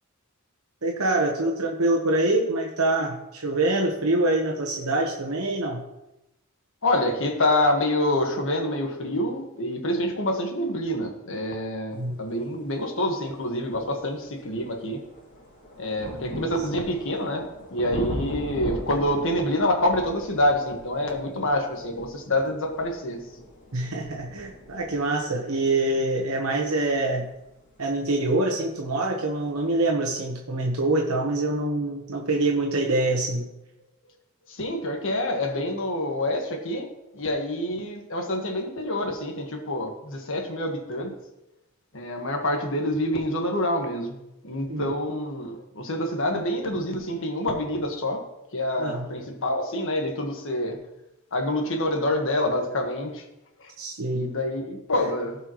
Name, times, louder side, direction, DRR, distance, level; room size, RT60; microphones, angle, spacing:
voice 1, 0.8-5.8 11.9-12.2 16.1-16.4 23.7-27.3 27.8-33.5 44.7-44.9 48.8-49.1 53.8-54.3, right 2 dB, 75° right, 0 dB, 1.2 m, -25 dB
voice 2, 6.8-15.0 15.8-23.2 34.5-36.9 37.1-41.2 41.9-44.2 44.4-48.2 48.5-50.8 51.3-53.2 53.6-53.7 54.1-55.4, left 1 dB, 65° left, 3 dB, 1.6 m, -27 dB
sound 1, 13.1-13.2 13.7-28.4 29.3-29.4, equal, 35° left, 2.6 m, -40 dB
16.5 x 5.5 x 3.1 m, 0.89 s
head